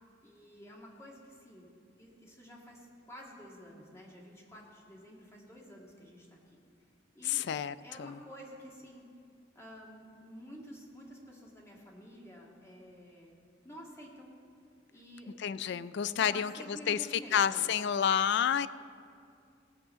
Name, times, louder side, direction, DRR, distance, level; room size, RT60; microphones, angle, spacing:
voice 1, 0.2-1.7 2.0-6.6 7.1-7.5 7.8-9.1 9.5-13.4 13.6-14.3 14.9-15.3 16.1-17.7, equal, 15° left, -3 dB, 2.0 m, -50 dB
voice 2, 7.2-8.2 15.4-17.0 17.3-18.7, left 8 dB, 65° left, 16 dB, 0.4 m, -30 dB
17.5 x 6.3 x 7.5 m, 2.4 s
head